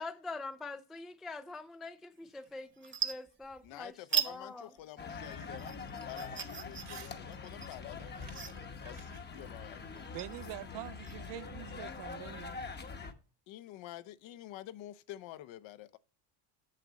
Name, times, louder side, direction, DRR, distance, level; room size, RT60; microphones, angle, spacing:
voice 1, 0.0-4.7, left 3 dB, ahead, 0.3 m, -44 dB
sound 1, 2.2-2.5 2.8-3.7 4.1-4.4 4.7-11.3, right 8 dB, 25° right, 1.1 m, -39 dB
voice 2, 3.6-5.8 6.1-10.2 13.5-16.0, left 14 dB, 65° left, 0.9 m, -49 dB
sound 2, 5.0-13.1, left 5 dB, 20° left, 0.9 m, -44 dB
Crumpling crinkling / Tearing, 6.8-7.2 7.5-10.8, right 9 dB, 80° right, 2.9 m, -57 dB
voice 3, 10.1-12.6, right 15 dB, 55° right, 0.5 m, -45 dB
7.2 x 6.7 x 4.1 m
cardioid pair, 120°, 50 cm